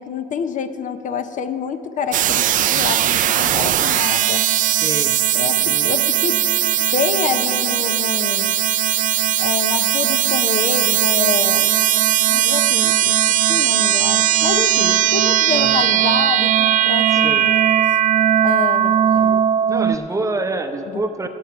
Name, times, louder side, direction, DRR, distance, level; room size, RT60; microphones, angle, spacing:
voice 1, 0.0-4.5 5.3-6.4 6.9-8.6 9.4-11.7 12.3-13.1 13.5-17.5 18.4-19.4 20.9-21.3, left 7 dB, 50° left, 10 dB, 0.6 m, -27 dB
sound 1, 2.1-20.0, right 11 dB, 50° right, 0.4 m, -18 dB
voice 2, 4.6-5.2 5.6-5.9 15.5-15.8 17.1-17.5 19.7-21.3, right 2 dB, 20° right, 7 dB, 0.7 m, -27 dB
17.5 x 7.4 x 5.8 m, 3.0 s
cardioid pair, 110°, 17 cm